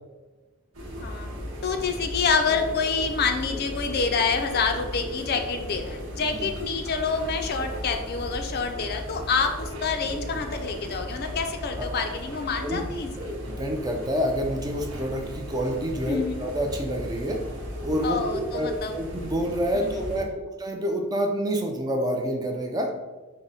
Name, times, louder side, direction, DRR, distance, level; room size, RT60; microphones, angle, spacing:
sound 1, 0.7-20.2, equal, 85° right, 1.0 m, -36 dB
voice 1, 1.6-13.3 16.1-16.4 18.0-18.9 19.7-20.3, left 5 dB, 45° left, 5 dB, 0.4 m, -27 dB
voice 2, 13.2-17.4 17.8-20.3 20.6-22.9, equal, 20° right, 3 dB, 0.4 m, -28 dB
4.9 x 2.1 x 3.9 m, 1.2 s
head